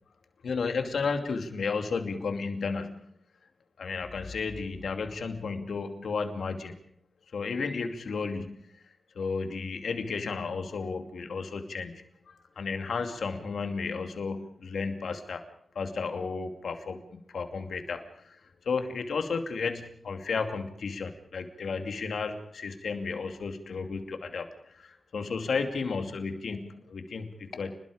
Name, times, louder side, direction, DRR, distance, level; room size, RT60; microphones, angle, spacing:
voice 1, 0.4-3.1 3.8-6.8 7.3-8.6 9.1-15.4 15.7-18.4 18.6-27.8, left 4 dB, 85° left, 6 dB, 2.6 m, -33 dB
29.0 x 21.5 x 5.1 m, 0.71 s
cardioid pair, 55°, 0 cm